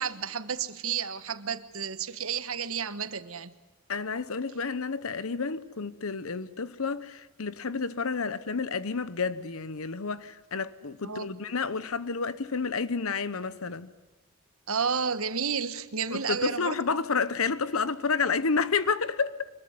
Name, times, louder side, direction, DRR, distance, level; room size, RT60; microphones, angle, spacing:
voice 1, 0.0-3.5 11.0-11.3 14.7-16.8, right 6 dB, 70° right, 1.4 m, -31 dB
voice 2, 3.9-13.9 16.1-19.5, left 5 dB, 70° left, 1.0 m, -30 dB
25.0 x 21.0 x 9.6 m
head